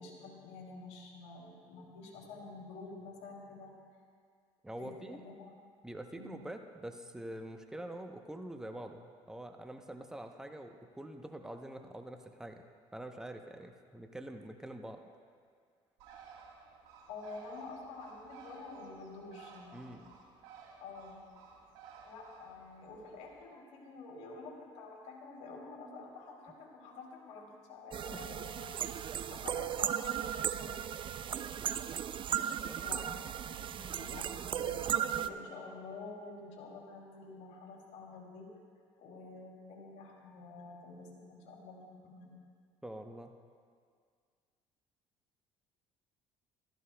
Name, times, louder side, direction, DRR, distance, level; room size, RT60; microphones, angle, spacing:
voice 1, 0.0-3.7 4.8-5.5 6.1-6.4 17.1-20.0 20.8-21.2 22.0-28.4 29.3-30.8 31.1-31.2 32.8-38.5 39.0-41.8 42.0-42.4, left 3 dB, 70° left, -2 dB, 2.8 m, -49 dB
voice 2, 4.6-5.2 5.8-12.6 12.9-15.0 19.7-20.1 27.9-28.3 32.6-33.0 42.8-43.4, right 1 dB, 5° right, 5 dB, 0.8 m, -45 dB
Bird, 16.0-23.4, right 6 dB, 85° right, 1.2 m, -55 dB
sound 1, 27.9-35.3, right 10 dB, 40° right, 0.4 m, -36 dB
Piano, 28.2-30.4, left 7 dB, 45° left, 0.5 m, -56 dB
15.0 x 13.5 x 2.2 m, 2.1 s
supercardioid pair, 80°, 13 cm